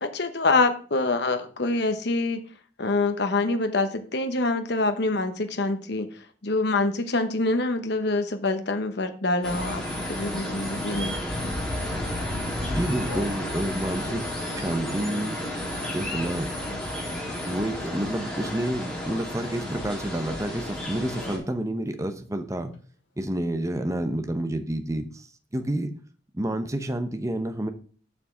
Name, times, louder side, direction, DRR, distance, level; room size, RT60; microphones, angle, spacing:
voice 1, 0.0-2.4 2.8-6.1 6.4-9.8 10.1-11.1, left 3 dB, 60° left, 8 dB, 1.0 m, -25 dB
sound 1, 9.4-21.4, left 1 dB, 5° left, 3.1 m, -32 dB
Telephone, 10.9-11.4 11.9-12.2 12.5-13.4 13.9-19.4 19.7-20.8 21.1-21.5 21.8-21.9 22.2-22.8, left 3 dB, 80° left, 2.5 m, -46 dB
voice 2, 12.7-14.2 14.5-15.4 15.9-16.5 17.5-22.7 23.2-25.3 25.5-25.9 26.3-27.7, right 1 dB, 15° right, 8 dB, 0.9 m, -29 dB
7.2 x 6.1 x 6.2 m, 0.42 s
head